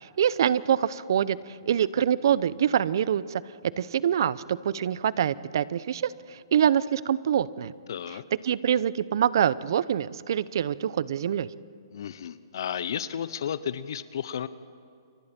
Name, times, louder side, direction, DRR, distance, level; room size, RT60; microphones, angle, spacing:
voice 1, 0.0-3.4 3.8-7.7 8.4-11.5, right 9 dB, 60° right, 19 dB, 0.7 m, -25 dB
voice 2, 7.9-8.2 11.9-14.5, left 8 dB, 60° left, 15 dB, 0.9 m, -33 dB
29.5 x 25.0 x 4.4 m, 2.5 s
hypercardioid pair, 135°, 2 cm